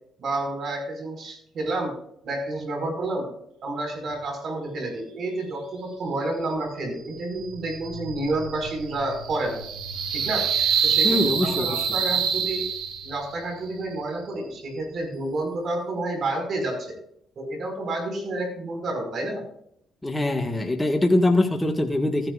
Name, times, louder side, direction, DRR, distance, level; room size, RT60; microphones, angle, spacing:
voice 1, 0.2-1.9 2.2-3.3 3.6-9.6 10.1-10.5 10.8-12.6 13.0-17.0 17.4-19.5, right 2 dB, 60° right, 4 dB, 5.3 m, -30 dB
sound 1, 7.4-13.3, right 6 dB, 85° right, 1.9 m, -26 dB
voice 2, 11.0-11.9 20.0-22.3, left 1 dB, 10° left, 3 dB, 1.7 m, -23 dB
15.0 x 10.5 x 2.5 m, 0.70 s
cardioid pair, 90°, 0 cm